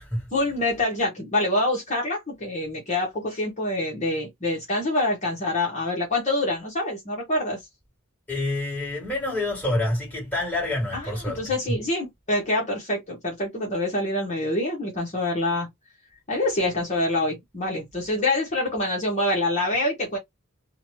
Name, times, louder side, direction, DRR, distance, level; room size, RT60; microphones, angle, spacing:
voice 1, 0.3-7.6 10.9-15.7 16.3-20.2, left 1 dB, 35° left, 1.0 m, -26 dB
voice 2, 8.3-11.4, left 2 dB, 10° left, 1.7 m, -27 dB
2.7 x 2.2 x 3.1 m
head